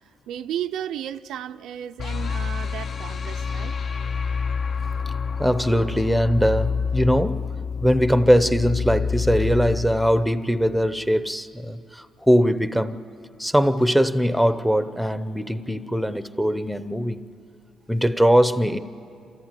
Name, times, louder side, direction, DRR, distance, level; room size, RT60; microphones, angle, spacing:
voice 1, 0.3-3.8 5.8-5.9, right 10 dB, 80° right, 0.5 m, -33 dB
sound 1, 2.0-11.1, left 5 dB, 45° left, 0.6 m, -28 dB
voice 2, 5.4-7.5 7.8-13.0 13.4-17.2 17.9-18.8, equal, ahead, 0.7 m, -21 dB
28.0 x 14.5 x 9.0 m
cardioid pair, 115°, 0 cm